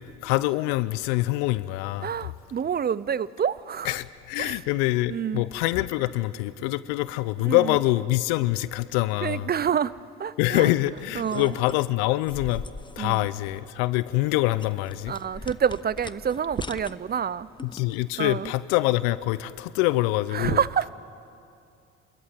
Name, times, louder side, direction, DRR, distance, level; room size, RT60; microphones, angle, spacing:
voice 1, 0.2-2.1 3.8-9.5 10.4-12.7 13.0-15.2 17.6-20.6, left 18 dB, 80° left, 0.7 m, -25 dB
voice 2, 2.0-4.0 4.4-4.5 5.1-5.4 7.4-7.8 9.2-9.9 10.2-10.7 11.1-11.5 13.0-13.3 15.1-17.5 18.2-18.5 20.3-20.9, right 8 dB, 30° right, 0.6 m, -27 dB
sound 1, 10.9-18.1, left 3 dB, 15° left, 0.7 m, -43 dB
26.5 x 14.0 x 9.4 m
hypercardioid pair, 65°, 34 cm